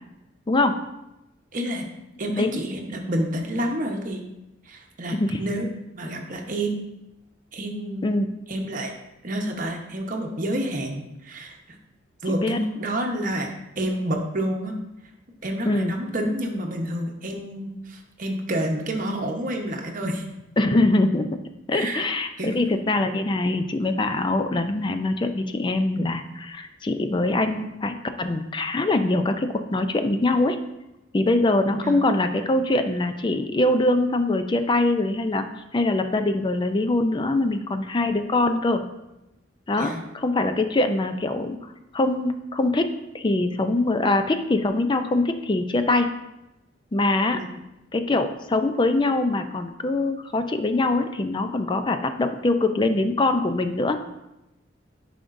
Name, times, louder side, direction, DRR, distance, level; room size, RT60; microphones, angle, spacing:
voice 1, 0.5-0.8 2.4-2.6 5.1-5.4 8.0-8.3 12.4-12.6 15.7-16.0 20.6-21.3 21.7-30.6 31.1-35.4 35.7-38.8 39.7-41.6 41.9-46.1 46.9-47.4 47.9-54.0, left 2 dB, 25° left, 8 dB, 0.4 m, -23 dB
voice 2, 1.5-1.8 2.2-4.2 4.7-5.7 5.9-6.8 7.5-8.1 8.5-8.9 9.2-11.6 12.2-13.5 13.8-14.7 15.4-20.2 21.7-22.1 22.4-22.6 31.8-32.0 39.8-40.0 47.3-47.5, right 1 dB, 45° right, 2 dB, 1.0 m, -29 dB
9.5 x 5.1 x 2.6 m, 0.93 s
head